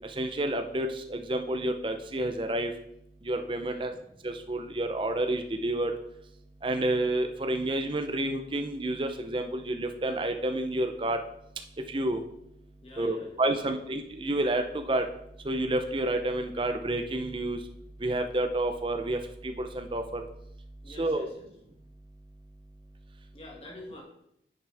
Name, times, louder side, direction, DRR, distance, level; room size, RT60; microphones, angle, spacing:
voice 1, 0.2-2.7 3.3-3.9 4.2-5.9 6.6-11.2 11.9-12.2 13.0-15.0 15.5-17.6 18.0-20.2 21.0-21.2, right 1 dB, 30° right, 6 dB, 0.6 m, -29 dB
voice 2, 3.6-4.0 12.8-13.8 20.8-21.5 23.3-24.0, left 1 dB, 30° left, -1 dB, 2.1 m, -47 dB
10.5 x 6.1 x 3.5 m, 0.77 s
head